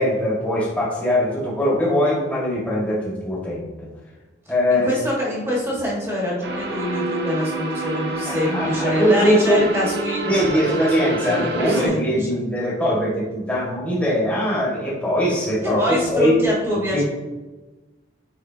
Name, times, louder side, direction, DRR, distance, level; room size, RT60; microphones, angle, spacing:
voice 1, 0.0-3.9 4.5-4.9 8.2-9.7 10.2-16.4 16.7-17.0, equal, 10° left, -7 dB, 1.7 m, -21 dB
voice 2, 4.7-10.4 10.7-12.3 15.6-17.0, left 1 dB, 15° right, -5 dB, 1.5 m, -24 dB
sound 1, 6.4-11.9, right 3 dB, 60° right, 0.8 m, -28 dB
9.1 x 3.9 x 2.8 m, 1.2 s
head